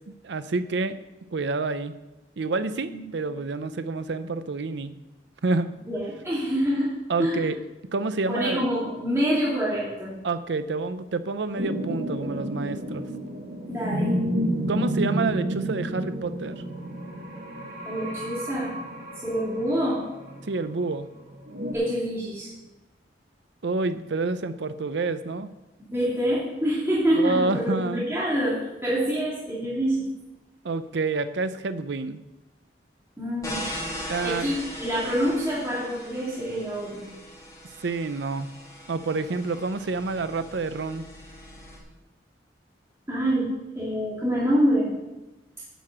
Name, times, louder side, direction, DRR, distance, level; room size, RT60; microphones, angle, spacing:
voice 1, 0.2-1.0 1.3-1.9 2.4-4.9 5.4-5.7 7.1-7.6 7.9-8.7 10.2-13.1 14.7-16.6 20.5-21.1 23.6-25.5 27.1-28.1 30.6-32.2 34.1-34.5 37.8-38.5 38.9-41.0, right 3 dB, 70° right, 12 dB, 0.5 m, -28 dB
voice 2, 5.9-6.9 7.2-7.5 8.3-10.3 13.7-14.2 17.9-18.7 19.2-20.1 21.7-22.5 25.9-30.0 33.2-33.6 34.2-37.1 43.1-45.0, equal, 15° right, -9 dB, 2.6 m, -26 dB
sound 1, 11.5-21.7, equal, 50° right, 1.8 m, -30 dB
sound 2, 33.4-41.8, left 1 dB, 20° left, 2.3 m, -39 dB
9.1 x 6.7 x 7.6 m, 1.0 s
head